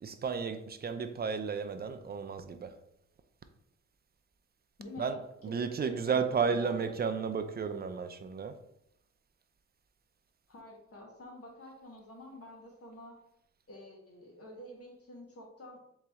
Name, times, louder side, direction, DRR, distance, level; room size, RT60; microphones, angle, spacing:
voice 1, 0.0-2.7 5.0-8.6, right 5 dB, 30° right, 0.5 m, -33 dB
voice 2, 4.8-6.9 10.5-13.2 13.7-15.8, left 1 dB, 50° left, 1.4 m, -49 dB
3.9 x 3.1 x 3.6 m
cardioid pair, 85°, 30 cm